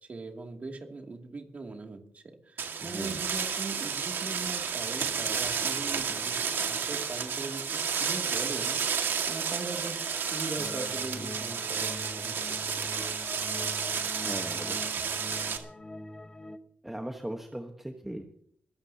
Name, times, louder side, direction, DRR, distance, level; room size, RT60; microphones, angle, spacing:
voice 1, 0.1-12.4, right 3 dB, 40° right, 2 dB, 2.6 m, -40 dB
sound 1, 2.6-15.6, right 6 dB, 75° right, 1.9 m, -31 dB
voice 2, 2.8-3.3 14.2-15.0 16.8-18.2, right 1 dB, 5° right, 3 dB, 1.2 m, -39 dB
sound 2, 5.1-7.1 9.1-11.1 12.9-15.0, left 4 dB, 65° left, 4.2 m, -50 dB
sound 3, 10.6-16.6, left 2 dB, 20° left, 1.1 m, -44 dB
22.0 x 16.5 x 2.9 m, 0.66 s
wide cardioid pair, 125°, 4 cm